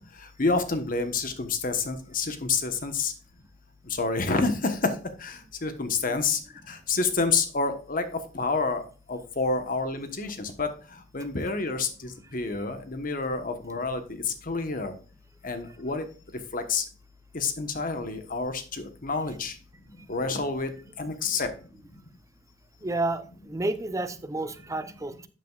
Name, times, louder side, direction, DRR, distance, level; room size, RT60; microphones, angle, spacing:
voice 1, 0.4-3.1 3.9-4.9 5.2-6.4 6.7-8.0 8.3-8.8 9.1-10.7 11.1-14.9 15.4-16.0 16.5-16.8 17.3-19.5 20.1-20.7 21.0-21.5, left 4 dB, 50° left, 8 dB, 1.3 m, -28 dB
voice 2, 22.8-25.3, right 2 dB, 20° right, 11 dB, 0.7 m, -31 dB
12.0 x 7.7 x 2.4 m, 0.36 s
head